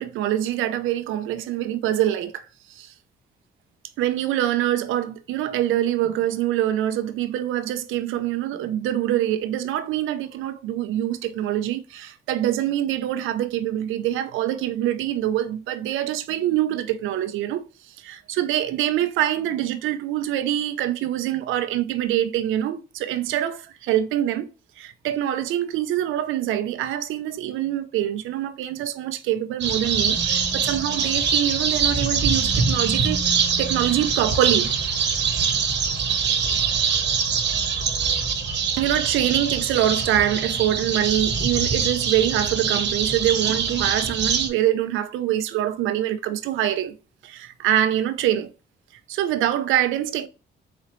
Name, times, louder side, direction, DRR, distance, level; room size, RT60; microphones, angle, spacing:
voice 1, 0.0-2.9 4.0-17.7 18.0-24.5 24.8-33.3 33.6-34.7 38.8-46.9 47.2-48.5 49.1-50.3, right 12 dB, 90° right, 0.5 m, -24 dB
sound 1, 29.6-44.5, right 6 dB, 65° right, 1.0 m, -23 dB
4.1 x 3.9 x 3.1 m
cardioid pair, 90°, 20 cm